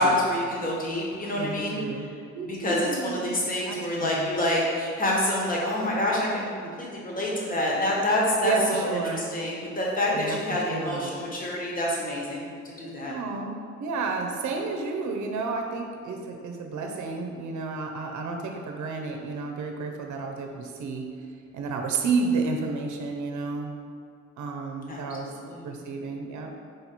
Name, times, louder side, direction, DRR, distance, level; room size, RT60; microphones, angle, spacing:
voice 1, 0.0-1.8 2.4-6.5 6.8-8.8 9.1-13.1 24.9-25.7, left 1 dB, 30° left, -3 dB, 1.2 m, -27 dB
voice 2, 1.4-2.1 2.3-4.3 8.4-9.3 10.1-11.1 13.1-21.1 21.5-23.7 24.4-25.3 25.6-26.5, right 4 dB, 75° right, 3 dB, 0.7 m, -31 dB
5.2 x 4.0 x 4.4 m, 2.3 s
cardioid pair, 145°, 29 cm